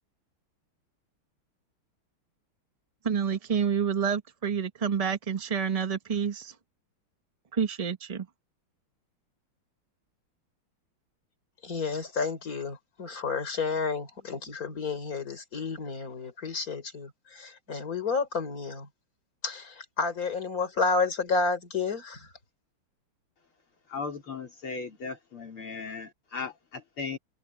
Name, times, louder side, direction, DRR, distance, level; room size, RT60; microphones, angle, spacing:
voice 1, 3.0-6.5 7.5-8.3, right 7 dB, 30° right, 0.6 m, -28 dB
voice 2, 11.6-18.9 19.4-22.3, left 4 dB, 40° left, 4.3 m, -31 dB
voice 3, 23.9-27.2, left 4 dB, 75° left, 4.8 m, -37 dB
omnidirectional pair, 2.4 m